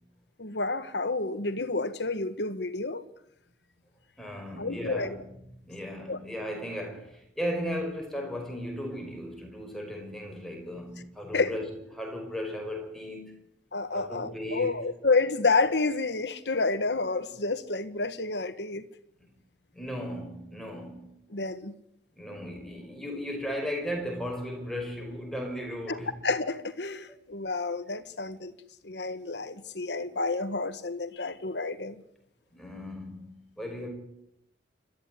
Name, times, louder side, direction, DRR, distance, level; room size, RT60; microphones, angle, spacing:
voice 1, 0.4-3.1 4.6-5.2 6.1-6.2 11.3-11.6 13.7-18.8 21.3-21.7 25.9-26.0 26.2-28.5 28.8-32.0, left 3 dB, 80° left, 1.6 m, -29 dB
voice 2, 4.2-5.2 5.7-11.7 11.9-13.3 13.9-14.8 19.7-21.1 22.2-26.1 32.5-33.9, equal, ahead, 5.6 m, -36 dB
27.0 x 13.5 x 9.7 m
head